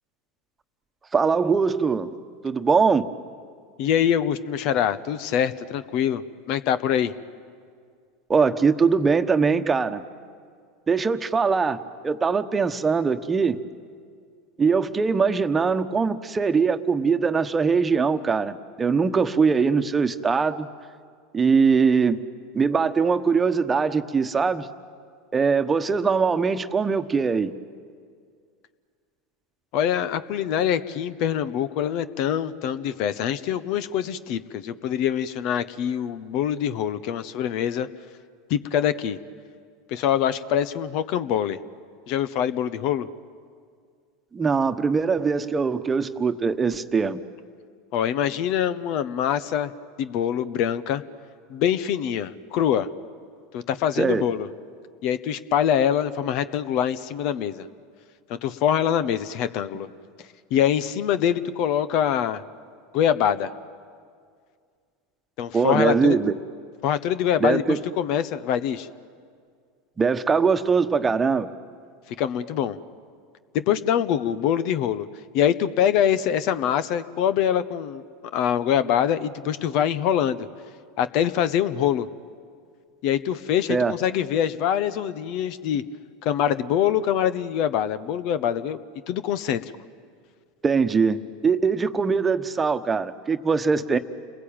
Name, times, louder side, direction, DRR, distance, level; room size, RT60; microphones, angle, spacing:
voice 1, 1.1-2.1 2.4-3.0 8.3-10.0 10.9-11.8 12.0-13.6 14.6-20.7 21.3-22.2 22.5-24.7 25.3-27.5 44.3-47.2 54.0-54.3 65.5-66.3 67.4-67.8 70.0-71.5 83.7-83.9 90.6-94.0, right 5 dB, 20° right, 9 dB, 1.3 m, -22 dB
voice 2, 3.8-7.1 29.7-37.9 38.5-39.2 39.9-41.6 42.1-43.1 47.9-49.7 50.0-51.0 51.5-52.9 53.5-54.5 55.0-57.7 58.3-59.9 60.5-62.4 62.9-63.5 65.4-66.2 66.8-68.9 72.2-72.8 73.5-75.1 75.3-78.0 78.3-80.5 81.0-82.1 83.0-85.8 86.2-88.8 89.1-89.6, left 9 dB, 55° left, 14 dB, 1.1 m, -24 dB
29.5 x 21.5 x 9.0 m, 2.1 s
hypercardioid pair, 90°, 0 cm